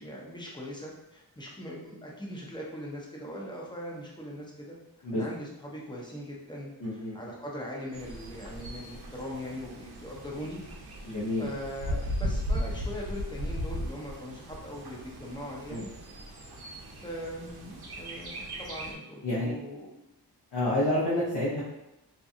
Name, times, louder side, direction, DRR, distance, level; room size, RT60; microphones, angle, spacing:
voice 1, 0.0-4.8 5.1-10.6 10.9-15.9 16.9-20.0 20.6-20.8, equal, 10° left, -3 dB, 0.6 m, -41 dB
voice 2, 6.8-7.2 11.0-11.5 15.7-15.8 19.2-19.5 20.5-21.6, left 1 dB, 80° left, -7 dB, 0.8 m, -28 dB
Bird, 7.9-19.0, equal, 70° right, 0.6 m, -37 dB
2.7 x 2.2 x 2.5 m, 0.89 s
wide cardioid pair, 100°, 40 cm